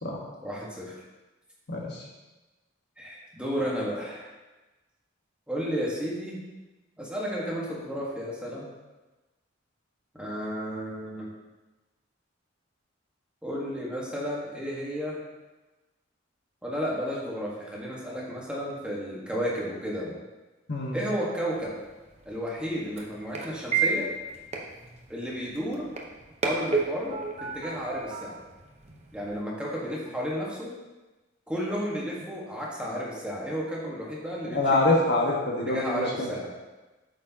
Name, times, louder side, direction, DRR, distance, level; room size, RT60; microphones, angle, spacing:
voice 1, 0.4-1.0 3.0-4.3 5.5-6.4 7.0-8.7 10.1-11.3 13.4-15.2 16.6-20.2 20.9-21.7 22.2-24.1 25.1-25.9 26.4-28.4 29.1-30.8 31.5-34.8 35.7-36.5, equal, 5° right, -5 dB, 1.4 m, -32 dB
voice 2, 1.7-2.1 20.7-21.0 34.4-36.3, left 2 dB, 60° left, -2 dB, 1.4 m, -25 dB
sound 1, 21.5-29.4, right 4 dB, 35° right, 0.9 m, -33 dB
8.5 x 6.4 x 2.8 m, 1.1 s
head